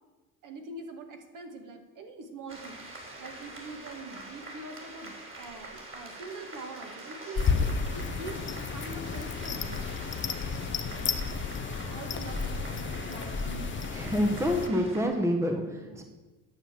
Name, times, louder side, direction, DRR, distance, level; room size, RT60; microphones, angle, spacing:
voice 1, 0.4-9.9 10.6-11.2 11.9-13.7 15.7-16.0, right 3 dB, 45° right, 5 dB, 2.0 m, -44 dB
sound 1, 2.5-15.0, right 2 dB, 30° right, 3.2 m, -45 dB
sound 2, 7.4-14.7, left 5 dB, 25° left, 0.8 m, -32 dB
voice 2, 13.9-16.0, equal, 5° right, 4 dB, 1.3 m, -27 dB
10.0 x 6.9 x 7.6 m, 1.2 s
supercardioid pair, 100°, 43 cm